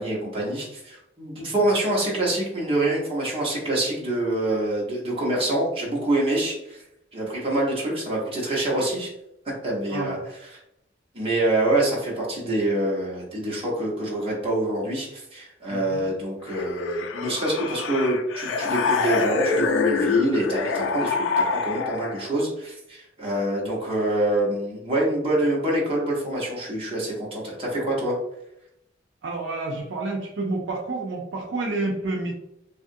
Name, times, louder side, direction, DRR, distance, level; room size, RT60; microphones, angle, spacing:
voice 1, 0.0-6.8 7.1-9.1 9.6-10.2 11.1-28.1, right 1 dB, 30° right, -4 dB, 1.0 m, -26 dB
voice 2, 15.7-16.1 29.2-32.3, right 2 dB, 80° right, 0 dB, 0.5 m, -29 dB
sound 1, 16.5-22.3, left 4 dB, 85° left, 0.4 m, -25 dB
2.8 x 2.5 x 2.5 m, 0.82 s
head